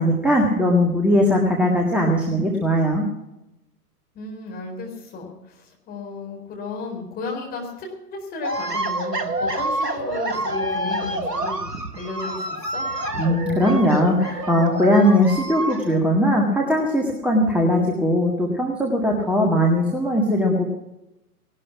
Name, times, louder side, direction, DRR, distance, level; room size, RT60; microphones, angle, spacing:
voice 1, 0.0-3.1 13.2-20.6, equal, 5° right, 0 dB, 1.8 m, -19 dB
voice 2, 4.1-12.8, left 3 dB, 20° left, 0 dB, 4.1 m, -34 dB
sound 1, 8.4-16.0, right 1 dB, 85° right, 1.5 m, -27 dB
18.5 x 12.5 x 6.0 m, 0.91 s
figure-of-eight pair, 115°, 47 cm